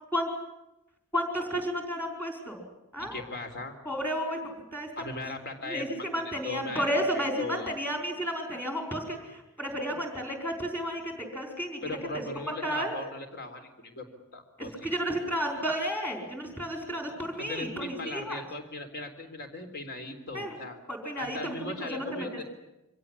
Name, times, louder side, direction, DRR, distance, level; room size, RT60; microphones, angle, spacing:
voice 1, 1.1-2.6 2.9-3.2 3.8-4.4 4.7-4.9 5.6-11.8 12.1-12.2 12.6-13.0 14.8-18.4 20.3-20.6 20.9-22.4, equal, 10° left, 2 dB, 4.8 m, -32 dB
voice 2, 3.0-3.7 5.0-5.9 6.4-7.8 11.8-14.0 14.3-14.9 17.4-20.8 21.2-22.4, left 2 dB, 50° left, 6 dB, 3.7 m, -38 dB
25.0 x 17.5 x 9.8 m, 0.97 s
head